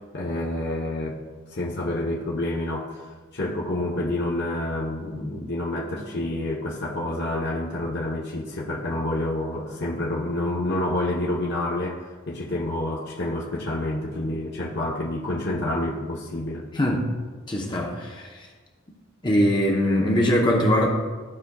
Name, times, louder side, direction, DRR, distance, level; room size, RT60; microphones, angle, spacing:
voice 1, 0.1-1.2 1.5-3.0 3.3-12.0 12.3-16.7, left 1 dB, 50° left, -5 dB, 0.9 m, -28 dB
voice 2, 16.7-17.0 17.5-18.5 19.2-20.9, equal, 20° left, -2 dB, 0.8 m, -22 dB
14.0 x 4.9 x 2.4 m, 1.4 s
head